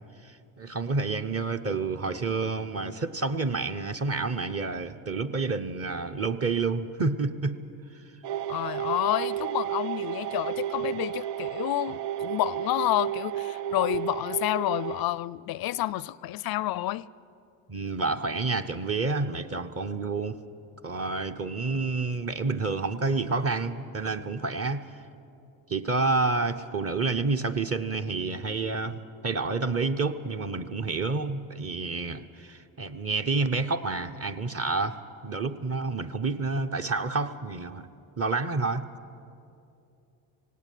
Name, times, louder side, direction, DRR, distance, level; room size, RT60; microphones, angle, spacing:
voice 1, 0.2-7.6 17.7-20.4 20.8-24.9 25.7-37.9 38.2-38.8, right 3 dB, 30° right, 0.9 m, -29 dB
sound 1, 8.2-15.0, right 11 dB, 80° right, 0.7 m, -32 dB
voice 2, 8.5-17.1, left 15 dB, 50° left, 0.5 m, -29 dB
18.0 x 17.0 x 9.2 m
supercardioid pair, 85°, 47 cm